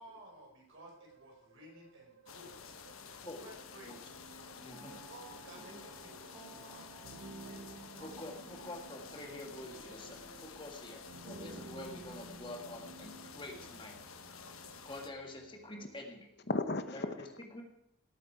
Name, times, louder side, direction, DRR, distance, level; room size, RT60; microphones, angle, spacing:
voice 1, 0.0-2.6 3.4-4.0 5.1-8.7, right 1 dB, 65° right, 4.8 m, -55 dB
sound 1, 0.8-16.0, right 3 dB, 85° right, 0.9 m, -55 dB
sound 2, 2.3-15.1, left 6 dB, 80° left, 1.2 m, -51 dB
voice 2, 3.2-3.5 3.8-4.0 4.3-5.0 5.5-5.8 8.0-14.0 14.9-16.2 17.6-17.7, left 1 dB, 25° left, 2.0 m, -47 dB
voice 3, 3.8-4.9 15.3-17.6, left 2 dB, 50° left, 0.9 m, -42 dB
sound 3, 4.7-13.8, right 2 dB, 10° right, 2.3 m, -58 dB
17.5 x 9.3 x 4.9 m
head